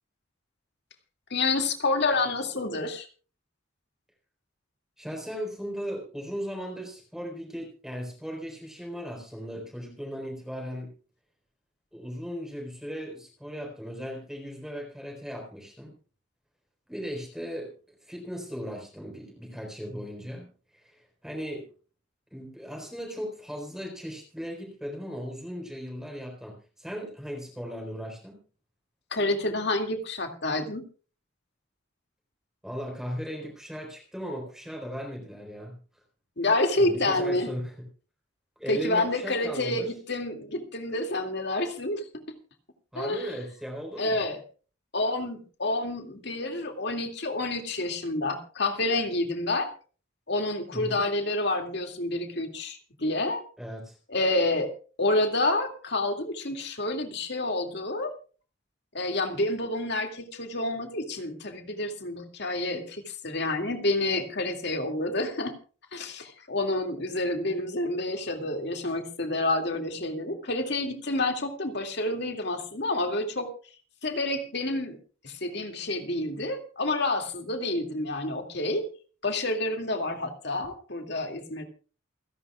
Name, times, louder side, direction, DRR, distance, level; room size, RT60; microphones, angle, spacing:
voice 1, 1.3-3.1 29.1-30.8 36.4-37.5 38.7-42.2 43.0-43.3 44.0-44.4 44.9-49.7 50.3-53.4 54.1-54.7 55.0-58.1 58.9-65.5 65.9-73.5 74.0-75.0 75.2-78.8 79.2-81.6, left 2 dB, 55° left, 4 dB, 2.3 m, -28 dB
voice 2, 5.0-10.9 11.9-15.9 16.9-17.7 18.0-21.7 22.3-28.4 32.6-35.7 36.8-37.7 38.6-39.9 42.9-44.2 50.7-51.0 53.6-54.0, equal, ahead, 0 dB, 4.2 m, -37 dB
28.5 x 11.0 x 2.3 m, 0.38 s
head